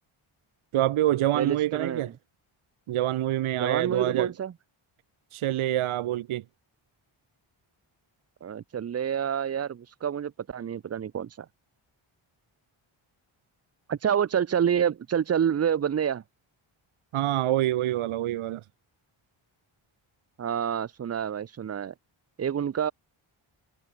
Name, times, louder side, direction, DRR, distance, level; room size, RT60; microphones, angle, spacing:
voice 1, 0.7-2.1 2.9-4.3 5.3-6.4 17.1-18.6, right 13 dB, 75° right, 0.7 m, -26 dB
voice 2, 1.3-2.1 3.6-4.5 8.4-11.5 13.9-16.2 20.4-21.9 22.4-22.9, right 8 dB, 35° right, 0.4 m, -28 dB
wide cardioid pair, 120°, 50 cm